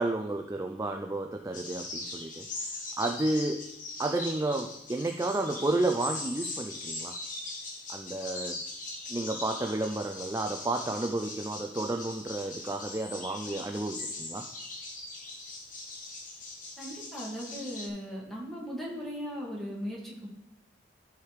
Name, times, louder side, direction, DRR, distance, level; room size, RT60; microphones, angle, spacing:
voice 1, 0.0-3.7 4.0-7.2 7.9-8.6 9.1-14.4, right 2 dB, 15° right, 4 dB, 0.3 m, -31 dB
sound 1, 1.5-17.9, left 2 dB, 45° left, 1.1 m, -40 dB
voice 2, 16.8-20.3, equal, ahead, -5 dB, 1.9 m, -38 dB
12.5 x 4.8 x 3.3 m, 0.81 s
head